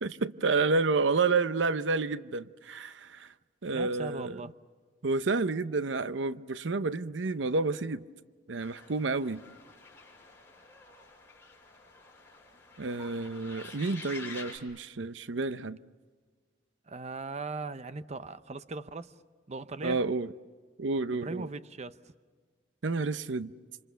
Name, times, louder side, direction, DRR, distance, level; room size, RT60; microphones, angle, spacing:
voice 1, 0.0-3.3 3.6-4.4 5.0-8.0 8.5-9.4 12.8-15.8 19.8-20.3 20.8-21.5 22.8-23.5, right 3 dB, 90° right, 0.7 m, -30 dB
voice 2, 3.7-4.5 16.9-19.1 19.5-20.0 21.1-22.0, right 3 dB, 40° right, 0.7 m, -39 dB
sound 1, 8.6-14.6, left 4 dB, 10° left, 6.6 m, -49 dB
28.0 x 27.5 x 6.9 m
head